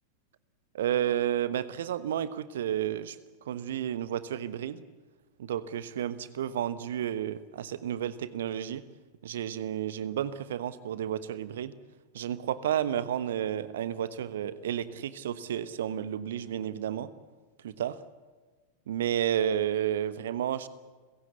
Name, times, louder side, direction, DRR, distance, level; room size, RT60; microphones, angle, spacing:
voice 1, 0.7-3.2 3.5-4.8 5.4-8.8 9.2-11.7 12.1-17.1 17.6-18.0 18.9-20.7, right 10 dB, 60° right, 15 dB, 1.2 m, -31 dB
29.0 x 16.0 x 8.4 m, 1.3 s
figure-of-eight pair, 90°, 0 cm